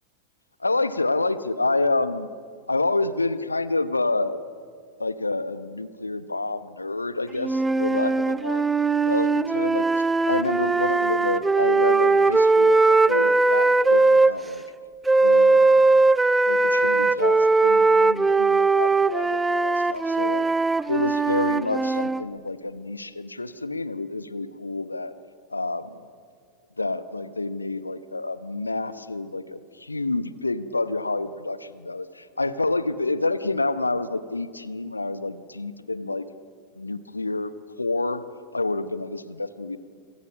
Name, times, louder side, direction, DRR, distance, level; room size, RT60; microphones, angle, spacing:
voice 1, 0.6-2.3 2.7-4.4 5.0-8.6 9.0-14.6 15.2-15.9 16.5-20.5 20.9-25.1 25.5-26.0 26.8-36.3 36.8-38.2 38.5-39.8, left 2 dB, 80° left, 14 dB, 1.0 m, -28 dB
sound 1, 7.4-14.3 15.1-22.2, right 3 dB, 10° right, 0.6 m, -20 dB
26.5 x 25.5 x 6.0 m, 2.2 s
figure-of-eight pair, 90°, 0 cm